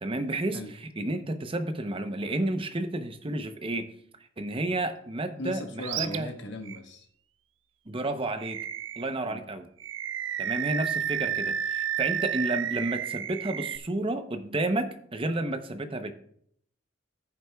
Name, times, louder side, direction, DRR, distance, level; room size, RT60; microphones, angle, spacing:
voice 1, 0.0-0.6 1.0-3.9 4.4-6.3 7.9-8.6 9.0-9.7 10.4-16.1, right 2 dB, 30° right, 8 dB, 0.8 m, -31 dB
voice 2, 5.4-7.1 9.3-9.5, left 1 dB, 65° left, 4 dB, 1.3 m, -38 dB
Animal, 5.8-6.2 6.6-6.8 8.4-9.1 9.8-13.8, right 9 dB, 75° right, 0.5 m, -31 dB
14.0 x 8.0 x 2.3 m, 0.66 s
head